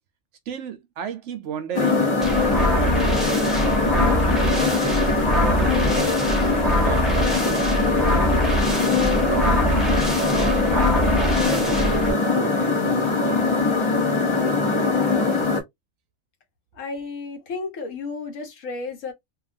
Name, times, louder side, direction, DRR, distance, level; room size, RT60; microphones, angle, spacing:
voice 1, 0.5-5.7 6.0-6.3 6.8-8.4 9.0-9.9 10.3-13.4, right 7 dB, 70° right, 0.9 m, -34 dB
sound 1, 1.7-15.6, left 3 dB, 30° left, 0.5 m, -22 dB
sound 2, 2.2-12.1, equal, ahead, 0.8 m, -24 dB
voice 2, 16.7-19.1, left 4 dB, 70° left, 1.2 m, -32 dB
2.8 x 2.4 x 2.5 m
omnidirectional pair, 1.4 m